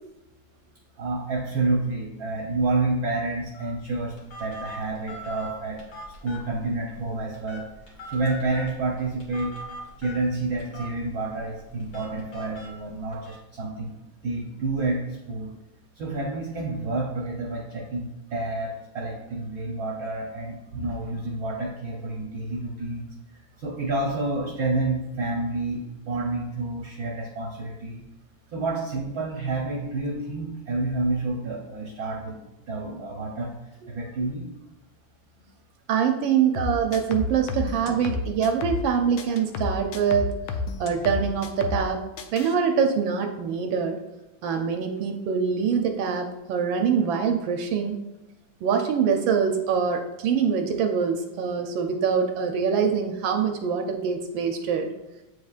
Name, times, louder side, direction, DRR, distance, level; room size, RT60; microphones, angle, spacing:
voice 1, 1.0-6.0 6.2-9.5 10.0-14.0 14.2-15.5 15.9-28.0 28.5-32.4 32.7-34.5, right 2 dB, 60° right, -1 dB, 1.1 m, -29 dB
Telephone, 3.5-13.4, equal, 55° left, 2.1 m, -43 dB
voice 2, 35.9-40.3 40.8-42.0 42.3-44.0 44.4-48.0 48.6-54.9, right 6 dB, 80° right, 5 dB, 1.3 m, -24 dB
sound 1, 36.5-38.9 39.2-41.9 42.2-42.5, left 4 dB, 85° left, 1.4 m, -31 dB
8.0 x 4.9 x 2.4 m, 0.98 s
omnidirectional pair, 2.2 m